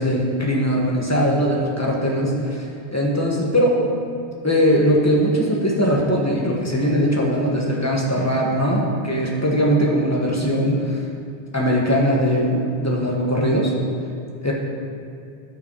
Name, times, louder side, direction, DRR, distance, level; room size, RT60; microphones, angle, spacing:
voice 1, 0.0-3.8 4.4-11.0 11.5-13.7 14.4-14.5, equal, 15° left, -3 dB, 1.5 m, -20 dB
14.5 x 5.4 x 4.7 m, 2.5 s
omnidirectional pair, 1.2 m